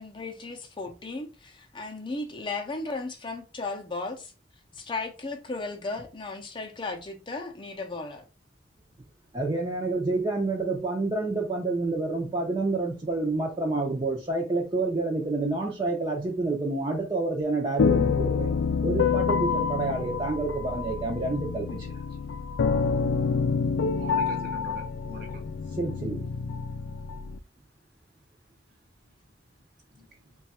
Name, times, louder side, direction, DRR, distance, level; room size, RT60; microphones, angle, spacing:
voice 1, 0.0-4.3 4.7-8.2, left 3 dB, 25° left, 0.6 m, -35 dB
voice 2, 9.3-18.5 18.8-21.9 25.8-26.3, right 3 dB, 25° right, 0.5 m, -28 dB
sound 1, 17.8-27.4, left 5 dB, 85° left, 0.3 m, -27 dB
voice 3, 23.9-25.4 29.9-30.4, right 1 dB, 55° right, 0.9 m, -43 dB
3.2 x 2.3 x 4.1 m
head